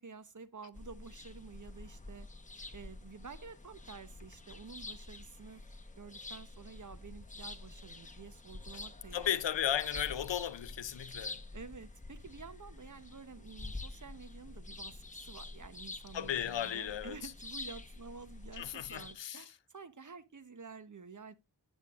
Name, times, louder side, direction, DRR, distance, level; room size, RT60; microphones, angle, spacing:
voice 1, 0.0-2.3 2.7-5.6 6.0-9.3 11.5-21.3, right 5 dB, 45° right, 0.8 m, -50 dB
sound 1, 0.7-19.1, left 2 dB, 15° left, 0.9 m, -48 dB
voice 2, 9.1-11.4 16.1-17.3 18.5-19.4, left 10 dB, 85° left, 0.6 m, -35 dB
9.5 x 7.1 x 2.4 m
wide cardioid pair, 45°, 43 cm